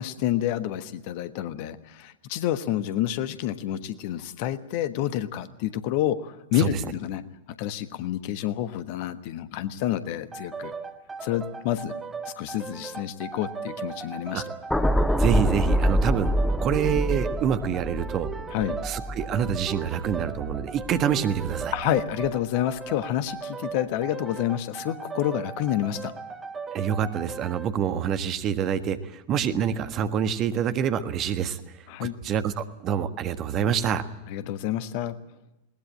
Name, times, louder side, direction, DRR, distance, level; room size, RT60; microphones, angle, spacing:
voice 1, 0.0-7.2 7.6-10.7 11.2-11.9 12.4-14.4 18.5-18.8 21.7-26.1 31.9-32.1 34.3-35.1, left 12 dB, 45° left, 12 dB, 1.3 m, -28 dB
sound 1, 10.3-27.7, right 5 dB, 15° right, 1.5 m, -37 dB
sound 2, 14.7-21.0 21.4-21.6, equal, 5° left, 1.1 m, -26 dB
voice 2, 15.1-16.3 16.6-18.3 18.8-21.7 26.7-31.6 32.0-34.0, right 8 dB, 35° right, 10 dB, 1.5 m, -26 dB
21.0 x 19.0 x 8.9 m, 0.94 s
figure-of-eight pair, 90°, 0 cm